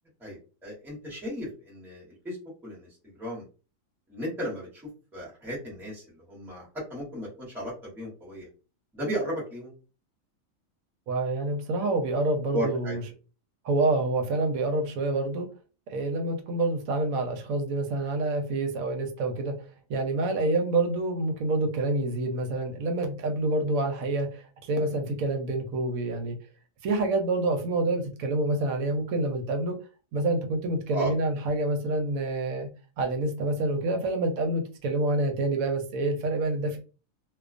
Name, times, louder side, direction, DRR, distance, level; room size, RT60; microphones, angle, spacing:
voice 1, 0.2-2.4 2.6-3.5 4.1-4.8 5.1-8.5 8.9-9.7 12.5-13.0 30.9-31.1, equal, ahead, -5 dB, 0.8 m, -35 dB
voice 2, 11.1-13.0 13.6-15.5 15.9-19.6 19.9-26.3 26.8-29.8 30.1-32.7 33.0-36.8, right 2 dB, 85° right, 5 dB, 1.0 m, -27 dB
2.3 x 2.3 x 2.4 m, 0.35 s
omnidirectional pair, 1.4 m